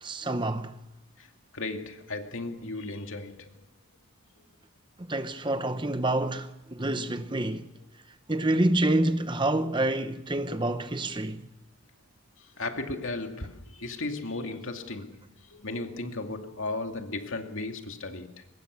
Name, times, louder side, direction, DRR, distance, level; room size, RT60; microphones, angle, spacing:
voice 1, 0.0-0.8 5.0-7.7 8.3-11.4, right 1 dB, 20° right, 0.8 m, -27 dB
voice 2, 1.5-3.5 12.4-15.2 15.5-18.3, left 2 dB, 65° left, 2.4 m, -35 dB
23.5 x 20.5 x 6.4 m
head